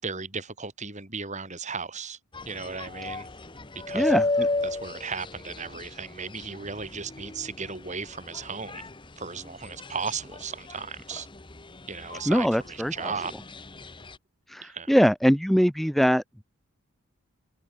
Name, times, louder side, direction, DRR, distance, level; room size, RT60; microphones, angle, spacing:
voice 1, 0.0-2.2 2.5-3.3 3.9-4.2 4.6-8.9 9.2-11.3 11.9-13.3 14.6-15.0, right 5 dB, 30° right, 5.4 m, -36 dB
sound 1, 2.3-14.2, left 2 dB, 20° left, 1.4 m, -34 dB
voice 2, 3.9-4.5 12.3-13.1 14.5-16.4, equal, ahead, 0.9 m, -23 dB
open air
head